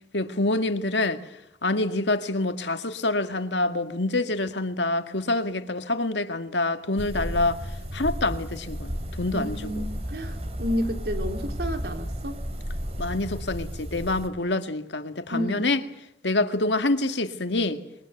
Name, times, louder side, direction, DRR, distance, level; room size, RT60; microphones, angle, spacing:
voice 1, 0.1-1.2 1.6-7.6 7.9-9.9 13.0-15.8 16.2-17.8, left 2 dB, 80° left, 2.0 m, -26 dB
sound 1, 7.0-14.3, equal, 35° right, 2.8 m, -33 dB
voice 2, 9.3-12.3 15.3-15.7, equal, 60° right, 3.3 m, -31 dB
26.5 x 23.0 x 8.0 m
head